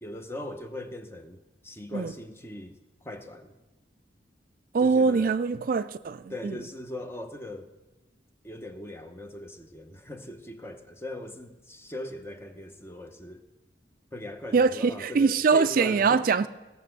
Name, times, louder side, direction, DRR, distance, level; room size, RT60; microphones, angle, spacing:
voice 1, 0.0-2.8 3.0-3.5 4.8-5.4 6.3-7.7 8.4-13.4 14.1-16.2, left 1 dB, 15° left, 0.9 m, -39 dB
voice 2, 4.7-6.6 14.5-16.5, right 5 dB, 50° right, 0.4 m, -23 dB
16.5 x 6.9 x 7.7 m
head